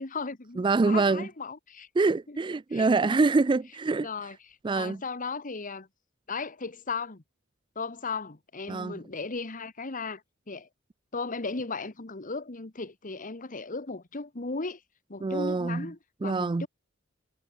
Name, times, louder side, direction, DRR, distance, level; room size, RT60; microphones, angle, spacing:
voice 1, 0.0-1.9 2.3-2.4 2.7-3.2 4.0-4.4 4.7-5.9 6.3-7.2 7.7-10.2 10.5-10.7 11.1-14.8 15.1-16.7, left 4 dB, 40° left, 1.4 m, -36 dB
voice 2, 0.6-1.3 2.0-4.1 4.6-5.0 8.7-8.9 15.2-15.9 16.2-16.7, right 3 dB, 25° right, 0.4 m, -25 dB
head